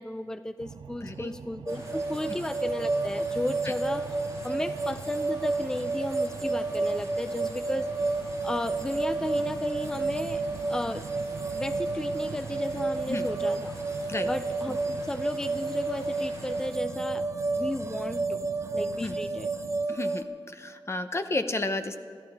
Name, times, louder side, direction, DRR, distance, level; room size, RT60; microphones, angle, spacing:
voice 1, 0.0-4.1 4.4-7.9 8.4-11.1 11.5-13.8 14.2-17.3 17.6-18.5 18.7-19.5, left 1 dB, 10° left, 11 dB, 0.4 m, -34 dB
sound 1, 0.6-19.9, right 6 dB, 80° right, 0.4 m, -44 dB
voice 2, 1.0-1.3 3.6-3.7 13.1-13.2 14.1-14.3 19.0-19.2 19.9-20.2 20.5-22.0, left 2 dB, 35° left, 8 dB, 0.7 m, -31 dB
sound 2, 1.7-16.7, left 1 dB, 80° left, 4.8 m, -48 dB
sound 3, 1.7-20.2, right 3 dB, 35° right, 0.7 m, -31 dB
27.5 x 12.5 x 3.5 m, 2.2 s
wide cardioid pair, 135°, 8 cm